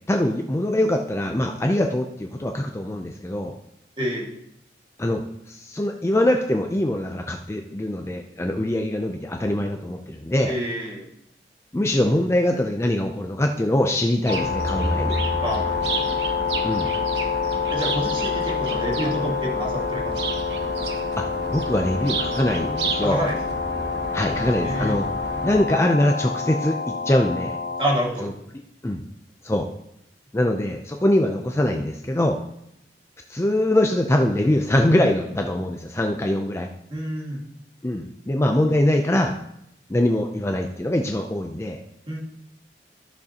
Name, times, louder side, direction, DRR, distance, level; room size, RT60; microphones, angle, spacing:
voice 1, 0.1-3.6 5.0-5.2 5.5-10.5 11.7-15.2 16.6-16.9 21.2-23.2 24.1-25.1 25.4-26.8 27.1-27.6 28.2-28.3 28.8-29.0 29.4-29.7 30.3-32.4 33.3-36.7 37.8-39.4 39.9-41.8, left 1 dB, 15° left, 3 dB, 0.5 m, -23 dB
voice 2, 4.0-4.3 10.5-11.1 15.4-16.1 17.7-20.3 23.0-23.4 24.6-25.0 27.8-28.3 36.9-37.5 42.1-42.2, equal, 30° right, -2 dB, 1.9 m, -28 dB
sound 1, 14.3-28.0, left 5 dB, 55° left, 0.7 m, -27 dB
sound 2, 14.3-25.6, right 3 dB, 70° right, 0.9 m, -31 dB
13.5 x 6.6 x 2.9 m, 0.78 s
head